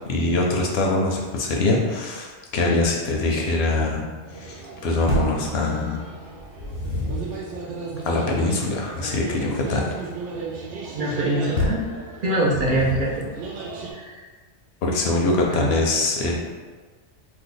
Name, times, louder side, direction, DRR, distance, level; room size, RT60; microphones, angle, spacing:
voice 1, 0.1-4.1 4.3-6.0 8.0-9.9 14.8-16.4, left 2 dB, 70° left, -1 dB, 0.8 m, -23 dB
sound 1, 4.2-13.9, right 3 dB, 85° right, 0.9 m, -36 dB
sound 2, 5.1-5.5 6.4-7.4 11.6-11.9 12.5-13.3, left 1 dB, 85° left, 1.1 m, -26 dB
voice 2, 10.9-11.8 12.2-13.3 13.9-14.2 15.5-15.8, right 1 dB, 60° right, -4 dB, 0.6 m, -24 dB
2.7 x 2.2 x 3.9 m, 1.4 s
omnidirectional pair, 1.2 m